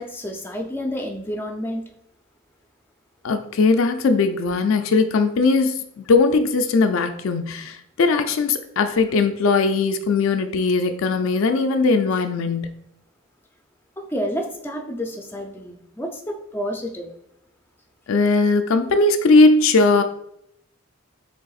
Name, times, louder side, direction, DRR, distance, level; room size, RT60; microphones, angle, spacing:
voice 1, 0.0-1.9 14.1-17.1, equal, 10° left, 2 dB, 0.4 m, -29 dB
voice 2, 3.2-12.8 18.1-20.0, left 3 dB, 70° left, 8 dB, 0.4 m, -19 dB
6.6 x 3.4 x 2.4 m, 0.76 s
head